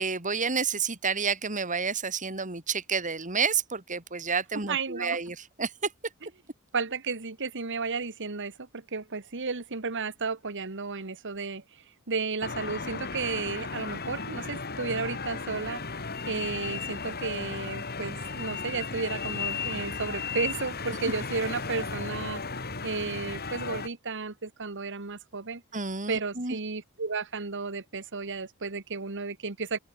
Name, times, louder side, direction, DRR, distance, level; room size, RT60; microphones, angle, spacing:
voice 1, 0.0-5.9 25.7-26.6, right 5 dB, 35° right, 3.7 m, -30 dB
voice 2, 4.7-5.2 6.7-11.6 12.1-15.8 16.3-22.4 22.8-25.6 26.1-29.8, right 4 dB, 55° right, 1.6 m, -33 dB
sound 1, 12.4-23.9, left 4 dB, 45° left, 4.0 m, -35 dB
open air
head